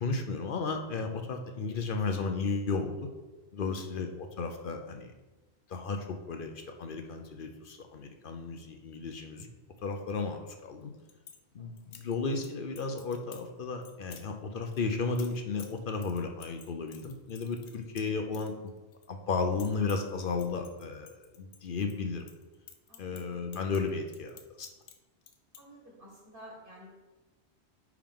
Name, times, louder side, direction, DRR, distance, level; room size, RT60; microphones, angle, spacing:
voice 1, 0.0-3.0 3.5-5.1 5.7-6.5 6.8-9.5 9.8-10.9 11.5-18.7 19.1-22.2 23.0-24.7, left 4 dB, 55° left, 5 dB, 0.7 m, -34 dB
voice 2, 3.6-4.0 11.6-12.0 18.0-18.2 22.9-23.6 25.6-26.9, equal, 50° right, -3 dB, 1.8 m, -52 dB
sound 1, 10.8-11.4 11.8-12.5 12.8-13.5 13.8-14.3 14.7-19.1 19.3-20.1 20.4-21.9 22.2-25.0 25.2-25.6, left 7 dB, 80° left, 1.0 m, -52 dB
9.4 x 3.6 x 3.6 m, 1.2 s
omnidirectional pair, 1.1 m